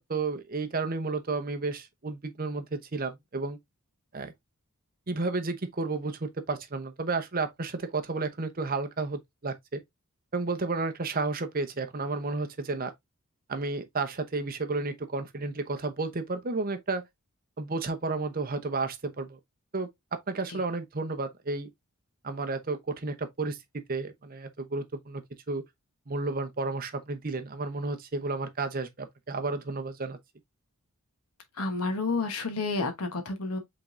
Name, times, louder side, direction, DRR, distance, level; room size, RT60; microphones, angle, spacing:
voice 1, 0.0-3.6 4.1-4.3 5.1-9.8 10.3-12.9 13.5-17.1 17.6-19.4 19.7-21.7 22.2-25.2 25.5-25.6 26.1-30.2, right 3 dB, 40° right, 0.8 m, -32 dB
voice 2, 31.6-33.6, left 3 dB, 80° left, 1.1 m, -30 dB
5.1 x 3.8 x 2.6 m
head